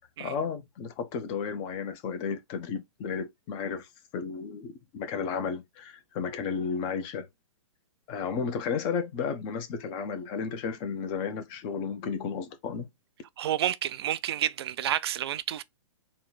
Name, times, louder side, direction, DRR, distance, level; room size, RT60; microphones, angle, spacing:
voice 1, 0.2-3.9 4.1-7.3 8.1-12.9, left 6 dB, 30° left, 0.8 m, -33 dB
voice 2, 13.4-15.6, right 11 dB, 50° right, 0.4 m, -29 dB
3.9 x 2.3 x 4.0 m
figure-of-eight pair, 115°, 17 cm